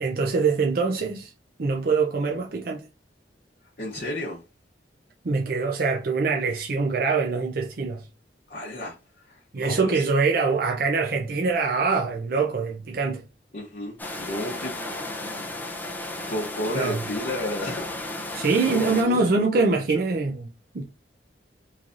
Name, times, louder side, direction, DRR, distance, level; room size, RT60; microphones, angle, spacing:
voice 1, 0.0-1.3 1.6-2.8 5.2-8.0 9.5-13.2 16.7-17.0 18.3-20.8, right 4 dB, 60° right, 0.5 m, -24 dB
voice 2, 3.8-4.4 8.5-10.0 13.5-15.4 16.3-20.0, left 1 dB, 55° left, 0.8 m, -33 dB
sound 1, 14.0-19.0, left 2 dB, 10° left, 0.5 m, -34 dB
3.8 x 3.2 x 2.5 m
head